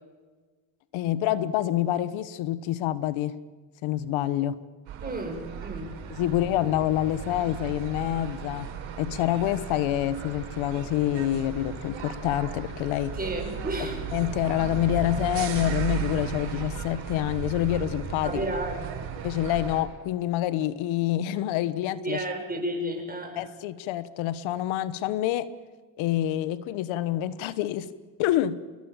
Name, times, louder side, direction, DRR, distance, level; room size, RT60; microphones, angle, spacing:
voice 1, 0.9-3.3 3.8-4.6 6.2-8.7 9.0-13.1 14.1-18.5 19.2-22.2 23.4-25.5 26.0-27.9 28.2-28.6, left 13 dB, 85° left, 15 dB, 1.3 m, -27 dB
sound 1, 4.9-19.8, right 7 dB, 75° right, 6.3 m, -36 dB
voice 2, 5.0-5.9 6.2-6.3 13.2-14.0 18.2-18.9 22.0-23.4, right 1 dB, 20° right, 3 dB, 7.3 m, -32 dB
28.0 x 21.5 x 7.5 m, 1.4 s
cardioid pair, 105°, 46 cm